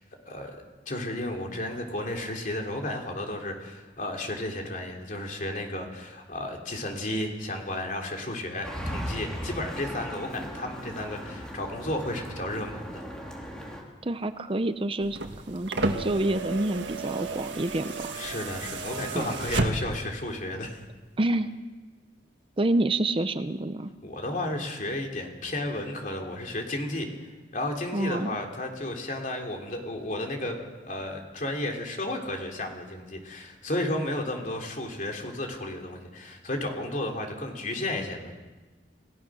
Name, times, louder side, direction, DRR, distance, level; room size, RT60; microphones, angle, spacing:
voice 1, 0.2-0.6 0.8-13.0 18.1-20.8 24.0-27.1 27.5-38.3, left 1 dB, 45° left, 2 dB, 3.4 m, -33 dB
sound 1, 8.6-13.8, equal, 5° left, 3.5 m, -37 dB
voice 2, 14.0-15.2 15.5-18.1 19.1-19.3 21.2-21.5 22.6-23.9 27.9-28.3, right 2 dB, 30° right, 10 dB, 0.7 m, -28 dB
sound 2, 15.0-20.1 21.3-21.4, right 3 dB, 80° right, 1.7 m, -32 dB
28.5 x 16.5 x 6.3 m, 1.2 s
head